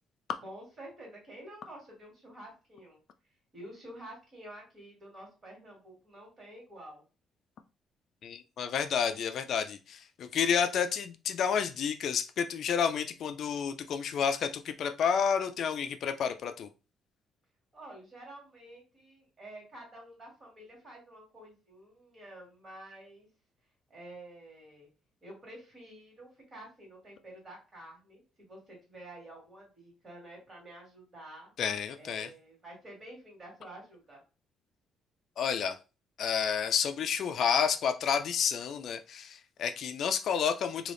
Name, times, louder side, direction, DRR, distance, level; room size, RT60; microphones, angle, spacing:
voice 1, 0.4-3.0 3.5-7.0 17.7-23.3 23.9-24.9 25.2-31.5 32.0-34.2, right 1 dB, 30° right, 2.0 m, -49 dB
voice 2, 8.2-16.7 31.6-32.3 35.4-35.8 36.2-40.9, left 7 dB, 55° left, 0.4 m, -30 dB
3.3 x 2.7 x 3.8 m
cardioid pair, 150°, 0 cm